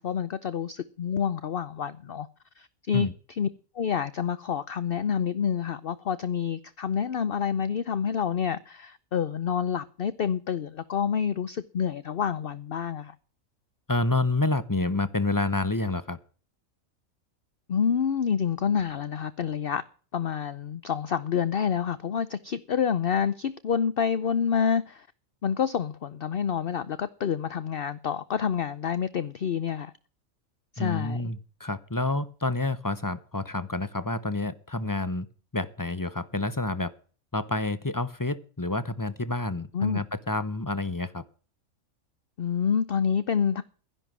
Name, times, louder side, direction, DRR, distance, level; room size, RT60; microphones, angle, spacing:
voice 1, 0.0-2.3 2.6-3.5 3.7-13.1 17.7-19.8 20.1-25.1 25.4-29.9 30.7-31.3 39.7-40.0 42.4-43.6, left 7 dB, 50° left, 0.8 m, -28 dB
voice 2, 13.9-16.2 30.8-35.3 35.5-36.9 37.3-41.2, left 2 dB, 20° left, 0.6 m, -28 dB
12.5 x 11.0 x 6.1 m
omnidirectional pair, 1.4 m